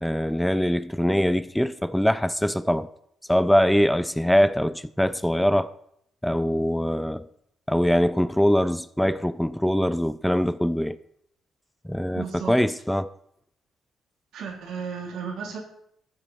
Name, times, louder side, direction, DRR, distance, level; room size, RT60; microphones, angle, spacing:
voice 1, 0.0-2.9 3.3-5.7 6.2-7.3 7.7-11.0 11.9-13.1, equal, 5° left, 0.5 m, -23 dB
voice 2, 12.1-12.5 14.3-15.6, right 6 dB, 80° right, 3.7 m, -34 dB
13.5 x 8.9 x 5.7 m
cardioid pair, 90°, 0 cm